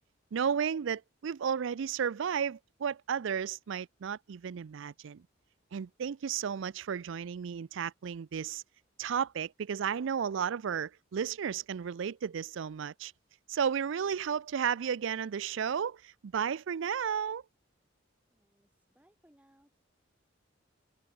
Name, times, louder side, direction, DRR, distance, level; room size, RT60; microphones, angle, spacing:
voice 1, 0.3-5.2 5.7-8.6 9.0-13.1 13.5-17.4, right 7 dB, 65° right, 0.4 m, -33 dB
voice 2, 18.3-19.8, equal, 5° right, 3.6 m, -66 dB
open air
head